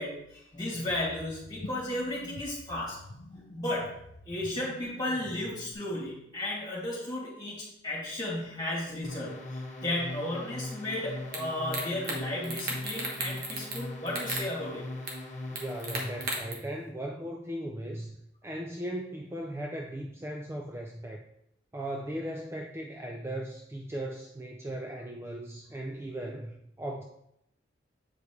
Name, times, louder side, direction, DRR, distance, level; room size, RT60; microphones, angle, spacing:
voice 1, 0.0-3.0 3.3-3.9 4.3-14.8, left 1 dB, 20° left, -5 dB, 2.6 m, -34 dB
sound 1, 0.7-5.7, left 1 dB, 70° left, 0.7 m, -47 dB
sound 2, 9.0-16.6, left 2 dB, 40° left, 1.1 m, -40 dB
sound 3, 11.3-11.4 11.7-12.2 12.4-13.8 14.1-14.5 15.1-15.2 15.6-16.5, right 3 dB, 50° right, 1.3 m, -34 dB
voice 2, 15.5-18.2 18.4-21.2 21.7-27.0, right 1 dB, 15° right, 0 dB, 0.4 m, -37 dB
7.8 x 5.1 x 3.1 m, 0.78 s
head